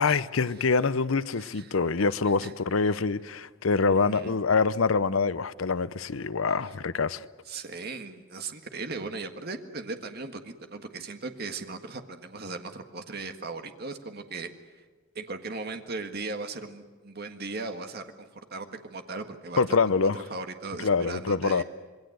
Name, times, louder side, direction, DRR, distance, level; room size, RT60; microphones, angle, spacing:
voice 1, 0.0-7.3 19.6-20.2 20.8-21.6, left 4 dB, 75° left, 0.7 m, -25 dB
voice 2, 1.4-1.7 2.3-2.5 3.9-4.3 7.5-14.5 15.2-19.6 20.0-21.6, right 3 dB, 50° right, 1.7 m, -38 dB
26.5 x 21.5 x 8.0 m
head